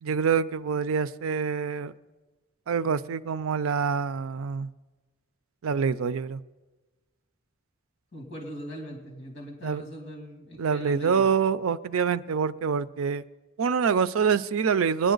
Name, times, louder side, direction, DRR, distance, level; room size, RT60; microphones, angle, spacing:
voice 1, 0.0-1.9 2.7-4.7 5.6-6.4 9.6-9.8 10.6-13.2 13.6-15.1, right 6 dB, 85° right, 15 dB, 0.5 m, -26 dB
voice 2, 8.1-11.3, equal, 60° left, 0 dB, 2.5 m, -40 dB
20.5 x 10.0 x 3.9 m, 1.2 s
head